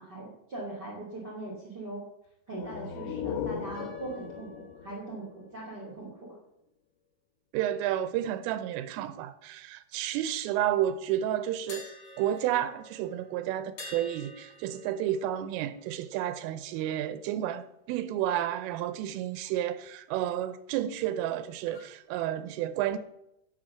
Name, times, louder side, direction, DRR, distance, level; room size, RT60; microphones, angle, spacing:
voice 1, 0.0-2.0 2.5-6.4, right 2 dB, 30° right, 2.4 m, -40 dB
sound 1, 2.5-6.1, left 7 dB, 85° left, 3.4 m, -38 dB
Piano, 3.7-5.7, left 8 dB, 50° right, 4.6 m, -50 dB
voice 2, 7.5-23.0, right 11 dB, 85° right, 3.4 m, -31 dB
sound 2, 11.7-17.6 17.9-18.1 21.6-22.0, left 2 dB, 65° left, 1.2 m, -50 dB
11.5 x 7.8 x 7.8 m
omnidirectional pair, 5.7 m